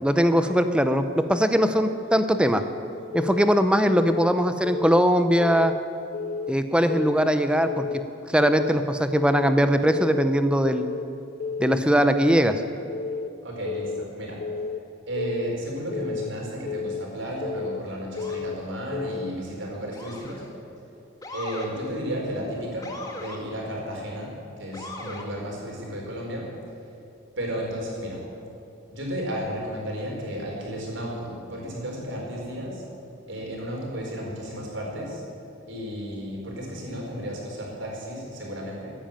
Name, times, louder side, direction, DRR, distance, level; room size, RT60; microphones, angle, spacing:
voice 1, 0.0-2.6 3.1-5.7 6.5-7.8 8.3-10.9 11.6-12.6, equal, 5° right, 9 dB, 0.6 m, -21 dB
Keyboard (musical) / Alarm, 3.1-3.5 3.9-4.3 4.6-5.0 5.4-5.8 6.1-6.5 6.9-7.3 7.6-8.0 8.4-8.8 9.1-9.5 9.9-10.3 10.6-11.0 11.4-11.8 12.2-12.5 12.9-13.3 13.7-14.0 14.4-14.8 15.2-15.5 15.9-16.3 16.7-17.0 17.4-17.8 18.2-18.6 18.9-19.3, left 5 dB, 45° left, 0.4 m, -31 dB
voice 2, 13.4-14.4 15.1-20.5 21.3-26.5 27.4-28.2 28.9-32.8 33.3-35.2 35.7-38.9, equal, 70° right, -2 dB, 4.5 m, -33 dB
Motor vehicle (road) / Siren, 18.1-18.5 19.9-20.5 21.2-21.7 22.8-23.4 24.7-25.3, left 2 dB, 20° left, 1.4 m, -38 dB
14.5 x 10.0 x 8.9 m, 3.0 s
head